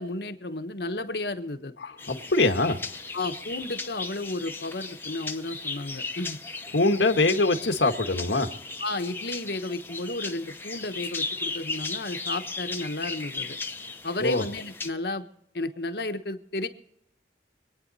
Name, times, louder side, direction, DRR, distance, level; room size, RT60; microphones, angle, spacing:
voice 1, 0.0-1.7 3.1-6.4 8.8-13.6 14.0-15.3 15.5-16.7, left 2 dB, 65° left, 7 dB, 1.2 m, -33 dB
voice 2, 1.8-2.8 6.7-8.5 14.2-14.4, left 2 dB, 90° left, 5 dB, 1.5 m, -23 dB
sound 1, 2.0-14.9, left 3 dB, 10° left, 0.8 m, -36 dB
25.5 x 9.3 x 4.1 m, 0.79 s
head